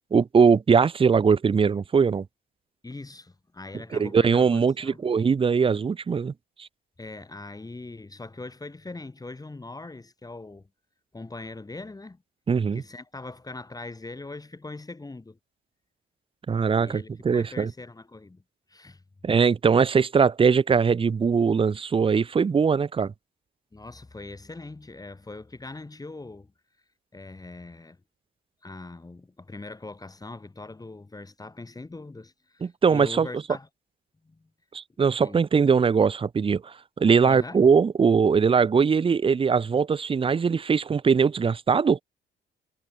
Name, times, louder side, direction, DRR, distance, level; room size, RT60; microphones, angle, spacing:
voice 1, 0.1-2.3 3.9-6.3 6.6-6.7 12.5-12.8 16.5-17.7 19.2-23.1 32.6-33.3 34.7-42.0, right 6 dB, 25° right, 0.6 m, -21 dB
voice 2, 2.8-5.0 7.0-10.7 11.1-12.2 12.7-15.4 16.7-18.4 18.7-19.0 23.7-26.5 27.1-28.0 28.6-33.7 34.2-34.5 35.2-35.4 37.2-37.6, left 2 dB, 20° left, 2.8 m, -41 dB
cardioid pair, 90°, 20 cm